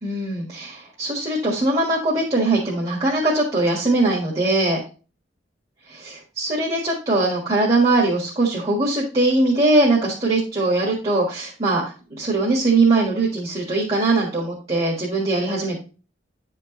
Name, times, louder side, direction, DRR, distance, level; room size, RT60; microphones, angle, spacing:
voice 1, 0.0-4.8 6.0-11.8 12.1-15.8, right 2 dB, 30° right, -4 dB, 1.5 m, -21 dB
9.5 x 4.5 x 3.0 m, 0.34 s
head